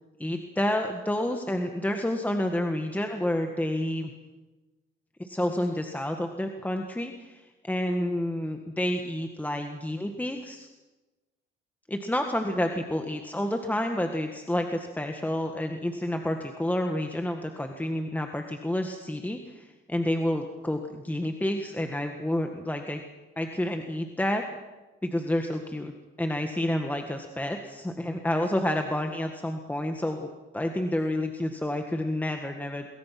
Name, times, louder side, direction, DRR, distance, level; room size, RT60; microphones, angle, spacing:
voice 1, 0.2-4.1 5.2-10.7 11.9-23.0 23.3-24.4 25.0-30.3 30.5-32.9, left 1 dB, 10° left, 4 dB, 1.9 m, -29 dB
23.0 x 22.5 x 6.1 m, 1.1 s
cardioid pair, 90°, 20 cm